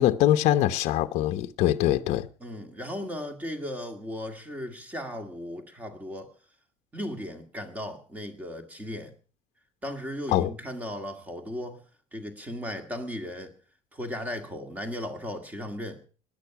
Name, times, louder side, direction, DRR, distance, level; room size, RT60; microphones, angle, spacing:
voice 1, 0.0-2.3 10.3-10.5, left 13 dB, 45° left, 0.9 m, -23 dB
voice 2, 2.4-6.3 6.9-9.1 9.8-11.8 12.1-13.5 13.9-16.0, equal, 10° right, 2.0 m, -36 dB
17.5 x 11.0 x 5.9 m
cardioid pair, 175°, 15 cm